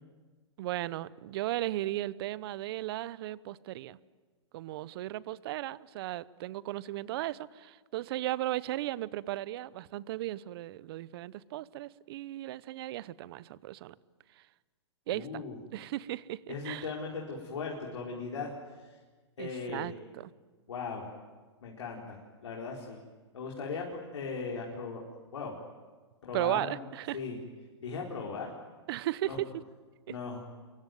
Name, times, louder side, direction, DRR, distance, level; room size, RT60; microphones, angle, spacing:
voice 1, 0.6-4.0 4.5-13.9 15.1-15.4 15.7-16.9 19.4-20.3 26.3-27.2 28.9-29.5, right 15 dB, 55° right, 19 dB, 0.9 m, -36 dB
voice 2, 15.1-15.6 16.5-18.5 19.4-19.9 20.7-21.1 21.6-23.0 23.3-25.0 25.3-25.6 26.2-26.8 27.1-27.4 27.8-28.5 29.3-29.4 30.1-30.4, left 4 dB, 80° left, -2 dB, 4.6 m, -38 dB
26.5 x 23.0 x 9.4 m, 1.4 s
hypercardioid pair, 125°, 15 cm